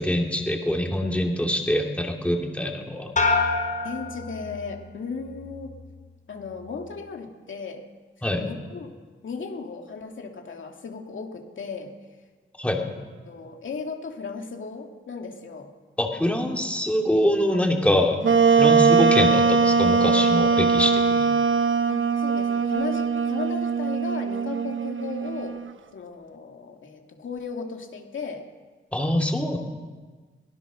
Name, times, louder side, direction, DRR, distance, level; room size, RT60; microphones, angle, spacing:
voice 1, 0.0-3.1 8.2-8.5 12.6-12.8 16.0-18.2 18.6-21.3 28.9-29.6, left 1 dB, 5° left, 1 dB, 2.8 m, -24 dB
sound 1, 3.2-4.9 5.3-5.9, left 3 dB, 40° left, 4.5 m, -27 dB
voice 2, 3.8-5.7 6.3-7.8 8.2-8.9 9.2-11.9 13.2-15.7 21.9-25.6 25.9-28.4, left 4 dB, 70° left, 2 dB, 2.5 m, -36 dB
Wind instrument woodwind instrument, 18.2-25.7, right 5 dB, 70° right, 1.1 m, -21 dB
22.5 x 18.5 x 6.4 m, 1.4 s
wide cardioid pair, 105°, 21 cm